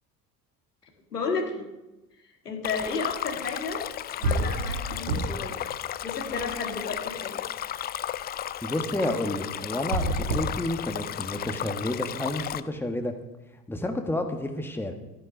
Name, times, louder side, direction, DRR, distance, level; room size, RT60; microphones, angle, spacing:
voice 1, 1.1-1.7 2.4-3.9 4.2-5.6 6.0-7.4, left 4 dB, 85° left, 2 dB, 1.9 m, -32 dB
Stream, 2.6-12.6, left 11 dB, 20° left, 0.4 m, -34 dB
sound 1, 3.8-3.9 4.2-5.5 5.9-7.0 9.7-11.3, right 2 dB, 80° right, 1.6 m, -29 dB
voice 2, 8.6-13.1 13.7-14.9, left 1 dB, 5° left, 5 dB, 1.5 m, -30 dB
13.5 x 9.9 x 5.1 m, 1.0 s
figure-of-eight pair, 60°, 46 cm